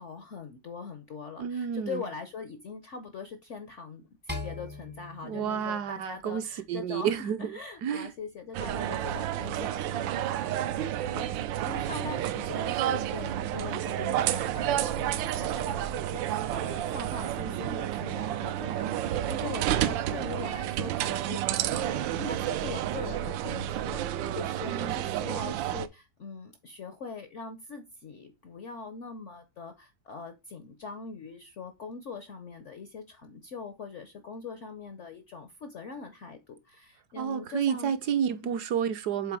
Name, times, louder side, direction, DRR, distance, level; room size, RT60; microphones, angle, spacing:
voice 1, 0.0-37.9, left 5 dB, 65° left, 0.7 m, -42 dB
voice 2, 1.4-2.0 5.2-7.5 7.8-8.1 24.6-25.2 37.2-39.4, right 8 dB, 70° right, 1.1 m, -30 dB
sound 1, 4.3-6.7, left 2 dB, 10° right, 0.4 m, -41 dB
sound 2, 8.5-25.9, right 12 dB, 85° right, 1.3 m, -30 dB
6.8 x 4.1 x 4.7 m
omnidirectional pair, 2.0 m